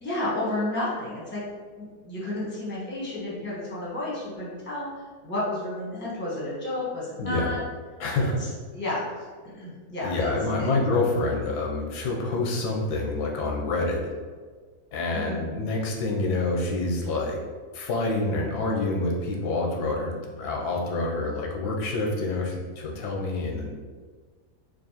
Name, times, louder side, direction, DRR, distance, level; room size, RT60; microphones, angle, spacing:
voice 1, 0.0-1.4 1.8-7.6 8.2-9.1 9.4-10.3 10.6-10.7 15.1-15.5, left 1 dB, 10° left, -7 dB, 0.8 m, -32 dB
voice 2, 7.2-7.5 8.0-8.4 10.0-14.1 14.9-17.4 17.7-23.7, left 2 dB, 90° left, -1 dB, 1.2 m, -27 dB
4.5 x 2.5 x 2.8 m, 1.5 s
omnidirectional pair, 1.6 m